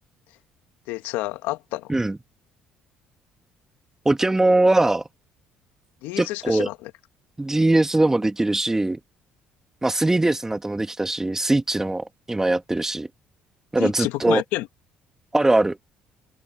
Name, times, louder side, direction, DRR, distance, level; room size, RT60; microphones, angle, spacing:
voice 1, 0.9-1.9 6.0-6.9 13.8-14.7, left 18 dB, 80° left, 2.1 m, -29 dB
voice 2, 4.0-5.0 6.2-6.7 7.4-9.0 9.8-13.1 13.7-14.4 15.3-15.8, right 2 dB, 15° right, 2.5 m, -21 dB
supercardioid pair, 70°, 3 cm